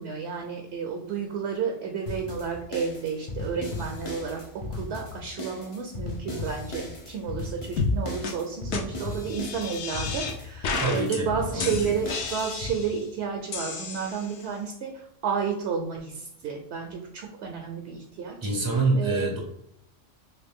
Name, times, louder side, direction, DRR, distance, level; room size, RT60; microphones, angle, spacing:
voice 1, 0.0-14.9 15.2-18.5 18.9-19.3, right 6 dB, 70° right, 2 dB, 0.8 m, -31 dB
sound 1, 2.1-12.7, left 2 dB, 40° left, 0.4 m, -37 dB
sound 2, 7.8-8.0 8.2-8.3 8.7-8.8 9.3-10.3 10.6-11.2 11.6-13.0 13.5-14.5, left 4 dB, 70° left, 0.9 m, -31 dB
voice 2, 10.8-12.0 18.4-19.4, right 2 dB, 30° right, -1 dB, 0.4 m, -26 dB
3.1 x 2.9 x 3.4 m, 0.79 s
omnidirectional pair, 1.3 m